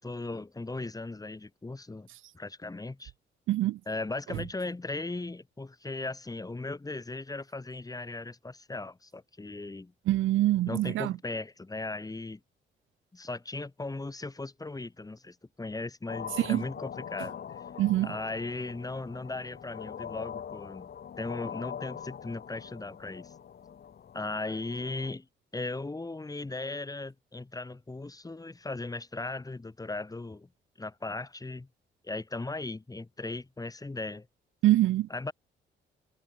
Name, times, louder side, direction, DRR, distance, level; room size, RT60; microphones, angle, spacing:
voice 1, 0.0-2.1 2.3-3.1 3.9-9.9 10.7-12.4 13.1-17.6 18.0-20.9 21.2-23.3 24.1-25.3 25.5-30.5 30.8-31.7 32.0-34.3 35.1-35.3, left 2 dB, 20° left, 4.3 m, -37 dB
voice 2, 3.5-3.8 4.3-4.4 10.1-11.2 16.4-16.7 17.8-18.1 34.6-35.1, right 15 dB, 80° right, 1.0 m, -25 dB
sound 1, 16.1-25.1, left 8 dB, 55° left, 3.0 m, -43 dB
cardioid pair, 90°, 20 cm